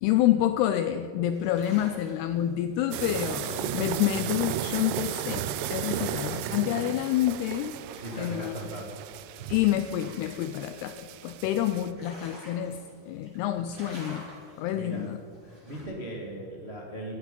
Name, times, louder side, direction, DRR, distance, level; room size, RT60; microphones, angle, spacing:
voice 1, 0.0-7.8 8.2-8.7 9.5-12.8 13.1-14.3 14.6-15.2, left 12 dB, 85° left, 9 dB, 2.3 m, -28 dB
sound 1, 1.3-15.8, right 1 dB, 25° right, 5.1 m, -52 dB
sound 2, 2.9-11.9, right 11 dB, 80° right, 2.4 m, -35 dB
voice 2, 8.0-8.9 14.7-15.1 15.4-17.1, right 1 dB, 55° right, -2 dB, 0.6 m, -38 dB
18.5 x 14.0 x 5.3 m, 2.6 s
omnidirectional pair, 5.2 m